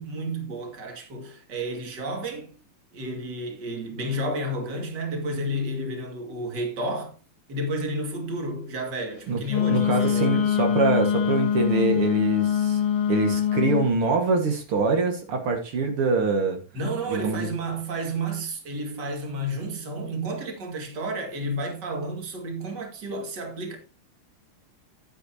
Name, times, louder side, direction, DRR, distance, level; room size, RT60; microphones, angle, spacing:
voice 1, 0.0-2.6 2.9-7.2 7.5-10.6 16.7-23.8, right 1 dB, 50° right, 2.8 m, -31 dB
Wind instrument woodwind instrument, 9.5-13.9, left 9 dB, 75° left, 2.1 m, -23 dB
voice 2, 9.7-12.8 13.1-16.6 17.1-17.5, right 4 dB, 80° right, 2.7 m, -24 dB
11.5 x 10.0 x 2.8 m
omnidirectional pair, 2.4 m